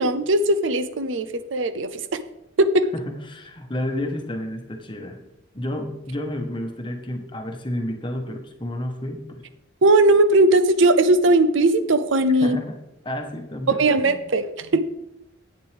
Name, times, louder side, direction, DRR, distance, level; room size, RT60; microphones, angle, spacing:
voice 1, 0.0-2.2 2.6-2.9 9.8-12.6 13.7-14.8, right 2 dB, 75° right, 12 dB, 0.6 m, -19 dB
voice 2, 2.9-5.2 5.5-9.5 12.4-12.8 13.0-14.3, left 1 dB, 25° left, 4 dB, 1.1 m, -31 dB
10.0 x 8.8 x 3.4 m, 0.87 s
head